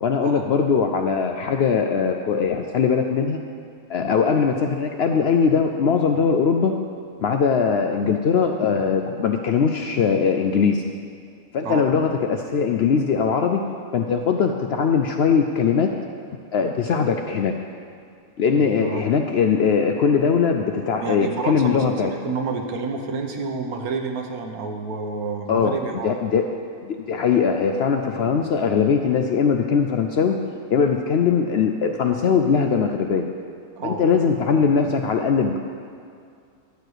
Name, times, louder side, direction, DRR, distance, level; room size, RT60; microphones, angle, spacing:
voice 1, 0.0-3.4 3.9-6.8 7.2-10.9 11.5-13.6 13.9-15.9 16.5-17.6 18.4-22.1 25.5-30.4 30.7-33.3 33.8-35.6, left 6 dB, 65° left, 4 dB, 0.6 m, -21 dB
voice 2, 18.6-19.0 21.0-26.1 33.8-34.0, right 4 dB, 85° right, 4 dB, 1.4 m, -29 dB
11.5 x 4.6 x 7.9 m, 2.3 s
omnidirectional pair, 1.5 m